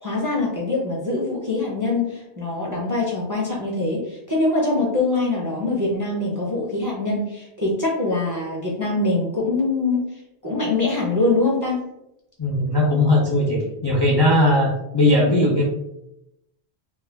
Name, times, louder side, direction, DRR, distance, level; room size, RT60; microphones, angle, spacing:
voice 1, 0.0-10.0 10.4-11.9, left 2 dB, 30° right, -4 dB, 0.4 m, -23 dB
voice 2, 12.4-15.6, left 1 dB, 40° left, -5 dB, 0.4 m, -18 dB
2.3 x 2.1 x 3.3 m, 0.86 s
omnidirectional pair, 1.0 m